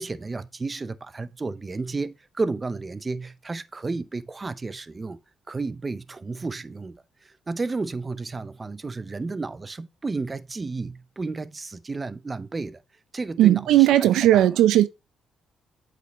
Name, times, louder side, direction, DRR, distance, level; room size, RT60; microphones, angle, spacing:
voice 1, 0.0-5.2 5.5-12.8 13.1-14.5, right 3 dB, 25° right, 0.6 m, -32 dB
voice 2, 13.4-14.9, right 13 dB, 85° right, 0.4 m, -17 dB
8.2 x 5.0 x 3.1 m
cardioid pair, 90°, 0 cm